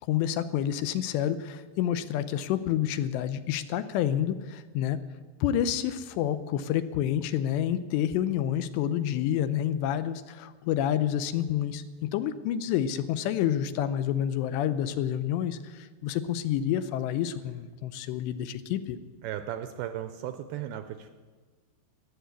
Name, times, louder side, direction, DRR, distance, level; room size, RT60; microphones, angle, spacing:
voice 1, 0.1-5.0 5.4-19.0, left 10 dB, 85° left, 12 dB, 2.9 m, -28 dB
voice 2, 19.2-21.1, right 11 dB, 80° right, 9 dB, 2.3 m, -36 dB
14.0 x 10.5 x 8.2 m, 1.4 s
omnidirectional pair, 5.0 m